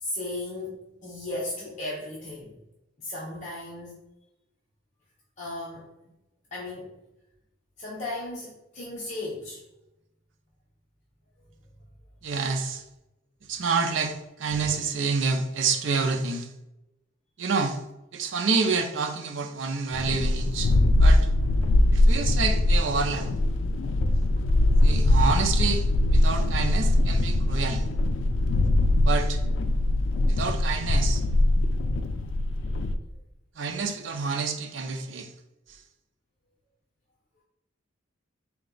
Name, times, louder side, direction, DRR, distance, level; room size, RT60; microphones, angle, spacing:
voice 1, 0.0-2.6 3.0-4.0 5.4-5.9 6.5-6.9 7.8-9.6 30.0-30.1, left 2 dB, 40° left, -5 dB, 0.7 m, -35 dB
voice 2, 12.2-12.8 13.5-16.5 17.4-17.8 18.1-20.7 21.0-21.3 21.9-23.3 24.8-25.8 26.1-27.8 29.0-29.4 30.3-31.2 33.6-35.3, right 4 dB, 85° right, 5 dB, 0.6 m, -28 dB
sound 1, 19.9-32.9, left 1 dB, 85° left, 0.4 m, -22 dB
4.1 x 2.3 x 3.8 m, 0.92 s
head